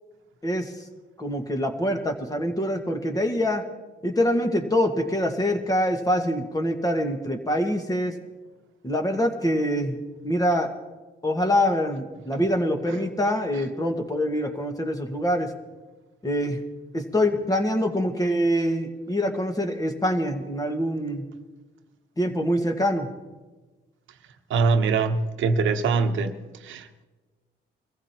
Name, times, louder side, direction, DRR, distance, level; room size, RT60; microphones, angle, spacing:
voice 1, 0.4-0.7 1.2-3.6 4.0-8.1 8.8-10.7 11.2-15.5 16.2-16.6 16.9-21.2 22.2-23.1, equal, 20° left, 1.6 m, -25 dB
voice 2, 24.5-26.3 26.6-27.0, right 4 dB, 75° right, 1.0 m, -23 dB
23.0 x 15.0 x 3.0 m
cardioid pair, 90°, 20 cm